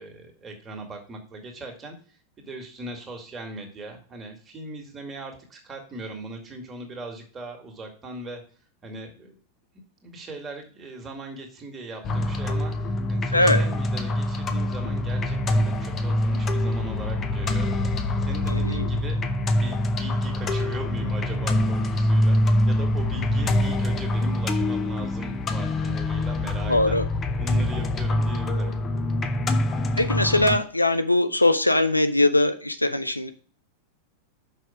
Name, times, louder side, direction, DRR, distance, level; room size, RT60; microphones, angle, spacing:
voice 1, 0.0-2.0 2.4-8.4 8.8-9.3 10.0-19.2 19.5-27.0 27.4-28.8, right 2 dB, 20° right, 2 dB, 2.1 m, -39 dB
sound 1, 12.0-30.6, left 1 dB, 25° left, 0.8 m, -25 dB
voice 2, 13.3-13.6 18.5-18.9 26.7-27.0 29.9-33.3, left 1 dB, 85° left, 9 dB, 0.6 m, -21 dB
6.1 x 5.5 x 5.0 m, 0.41 s
figure-of-eight pair, 90°, 0 cm